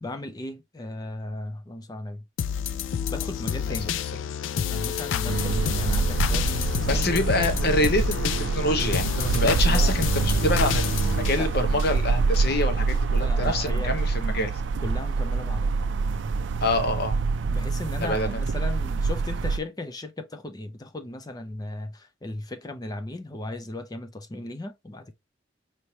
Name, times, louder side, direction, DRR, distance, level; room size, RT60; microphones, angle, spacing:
voice 1, 0.0-2.2 3.1-3.9 4.7-7.1 9.2-10.0 11.3-11.5 13.2-14.0 14.8-15.7 16.4-16.7 17.5-25.1, left 2 dB, 20° left, 0.5 m, -36 dB
sound 1, 2.4-12.4 12.9-13.0, left 8 dB, 90° left, 0.4 m, -29 dB
sound 2, 5.3-19.6, right 4 dB, 70° right, 0.4 m, -26 dB
voice 2, 6.9-8.2 8.5-14.5 16.6-17.2 18.0-18.4, left 1 dB, 55° left, 0.9 m, -26 dB
4.4 x 3.2 x 2.8 m
head